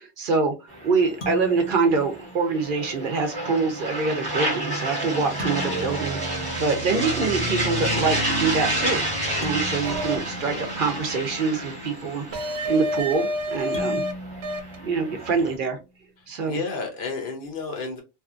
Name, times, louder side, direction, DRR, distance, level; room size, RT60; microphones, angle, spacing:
voice 1, 0.0-9.0 9.4-12.2 12.7-14.0 14.8-15.8 16.3-16.6, right 4 dB, 60° right, 0.7 m, -25 dB
sound 1, 0.7-15.5, right 1 dB, 20° right, 1.0 m, -30 dB
sound 2, 1.2-2.9 5.4-7.4 9.4-11.6 13.7-15.8, equal, 85° left, 1.2 m, -40 dB
sound 3, 9.8-10.2 12.3-14.1 14.4-14.8, equal, 90° right, 0.9 m, -28 dB
voice 2, 16.5-18.0, left 3 dB, 60° left, 0.9 m, -31 dB
2.7 x 2.5 x 2.3 m
omnidirectional pair, 1.0 m